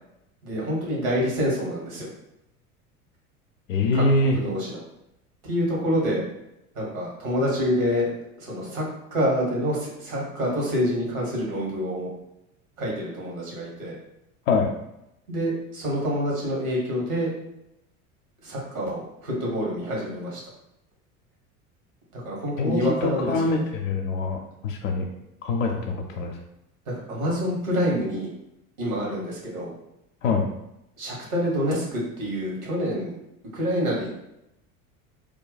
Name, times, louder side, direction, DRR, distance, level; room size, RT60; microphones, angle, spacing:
voice 1, 0.4-2.1 3.9-4.0 4.3-4.8 5.4-6.3 6.7-8.1 8.4-8.8 9.1-12.1 12.8-14.0 15.3-17.3 18.4-20.4 22.1-23.6 26.9-28.3 28.8-29.7 31.0-33.1 33.5-34.1, equal, 70° right, -3 dB, 1.4 m, -27 dB
voice 2, 3.7-4.4 14.5-14.7 22.6-24.4 24.6-25.1 25.4-26.3 30.2-30.5, left 3 dB, 60° left, 1 dB, 0.6 m, -24 dB
2.7 x 2.2 x 4.0 m, 0.85 s
figure-of-eight pair, 70°, 43 cm